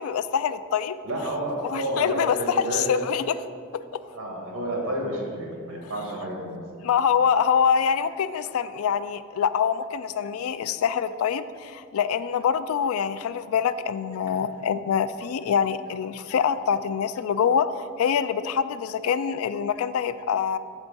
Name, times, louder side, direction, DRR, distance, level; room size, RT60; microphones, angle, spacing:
voice 1, 0.0-1.0 1.6-3.2 3.7-4.0 6.8-20.6, left 7 dB, 80° left, 14 dB, 0.3 m, -25 dB
voice 2, 1.0-3.0 4.1-6.6 14.5-14.6, right 1 dB, 80° right, 0 dB, 1.6 m, -30 dB
7.1 x 4.3 x 5.4 m, 2.2 s
head